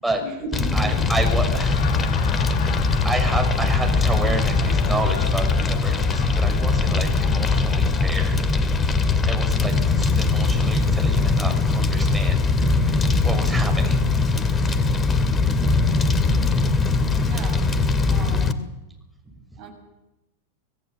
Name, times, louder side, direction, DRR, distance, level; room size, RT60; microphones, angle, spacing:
voice 1, 0.2-1.0 17.2-17.7 18.1-18.6 19.6-19.7, right 3 dB, 45° right, 5 dB, 7.6 m, -35 dB
Fire, 0.5-18.5, left 3 dB, 20° left, 2.2 m, -21 dB
voice 2, 0.7-1.9 2.5-8.4 9.3-12.7 13.2-14.0, right 2 dB, 5° right, 2 dB, 6.8 m, -30 dB
Laughter, 1.4-8.2, left 8 dB, 50° left, 1.9 m, -37 dB
26.0 x 18.0 x 7.8 m, 0.96 s
figure-of-eight pair, 90°, 0 cm